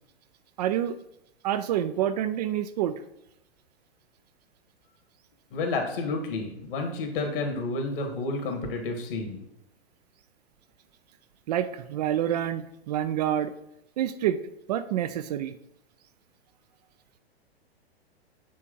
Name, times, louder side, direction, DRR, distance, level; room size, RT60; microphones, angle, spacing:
voice 1, 0.6-1.0 1.4-3.0 11.5-13.5 14.0-14.4 14.7-15.6, right 11 dB, 40° right, 11 dB, 0.4 m, -27 dB
voice 2, 5.5-9.4, left 3 dB, 55° left, 3 dB, 2.0 m, -30 dB
8.5 x 3.3 x 5.3 m, 0.81 s
figure-of-eight pair, 105°, 32 cm